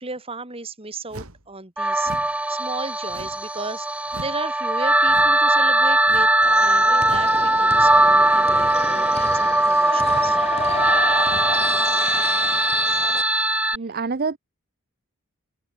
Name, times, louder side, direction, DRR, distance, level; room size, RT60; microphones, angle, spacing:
voice 1, 0.0-6.3 6.6-10.4 13.9-14.0, right 3 dB, 25° right, 2.3 m, -35 dB
sound 1, 1.1-1.5 2.0-2.4 3.1-3.5 4.1-4.4 5.1-5.4 6.0-6.4 7.0-7.4, right 1 dB, 75° right, 5.7 m, -40 dB
sound 2, 1.8-13.8, right 1 dB, 5° right, 0.6 m, -19 dB
sound 3, 6.4-13.2, left 4 dB, 25° left, 3.1 m, -31 dB
voice 2, 13.7-14.4, right 4 dB, 45° right, 0.6 m, -26 dB
head